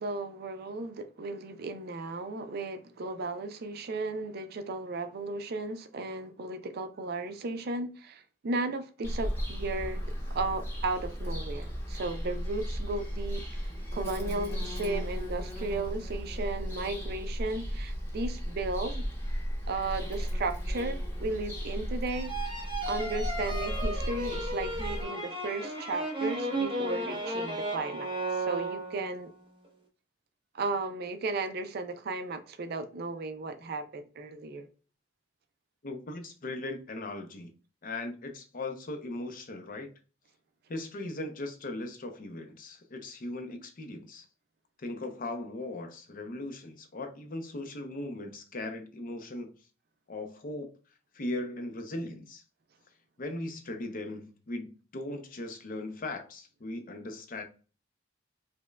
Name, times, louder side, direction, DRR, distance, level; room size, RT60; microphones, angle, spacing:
voice 1, 0.0-13.4 13.9-19.0 19.7-22.3 22.9-29.3 30.5-34.7, right 3 dB, 55° right, 0.4 m, -35 dB
Bird vocalization bird call bird song, 9.0-25.0, equal, 15° left, 0.9 m, -35 dB
sound 1, 22.1-29.2, right 1 dB, 25° right, 0.7 m, -34 dB
voice 2, 35.8-37.5 37.8-39.9 40.7-44.3 44.8-49.5 50.1-50.7 51.1-52.4 53.2-57.4, left 2 dB, 45° left, 0.6 m, -38 dB
5.0 x 2.2 x 2.2 m
head